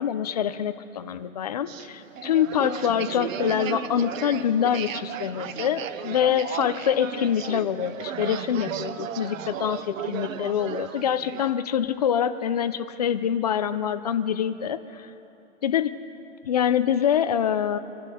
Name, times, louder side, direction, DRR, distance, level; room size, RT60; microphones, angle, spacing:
voice 1, 0.0-15.1 15.6-16.0 16.4-17.8, left 9 dB, 35° left, 11 dB, 0.4 m, -25 dB
sound 1, 1.7-11.5, right 9 dB, 85° right, 0.9 m, -35 dB
26.5 x 11.5 x 4.2 m, 2.9 s
supercardioid pair, 175°, 38 cm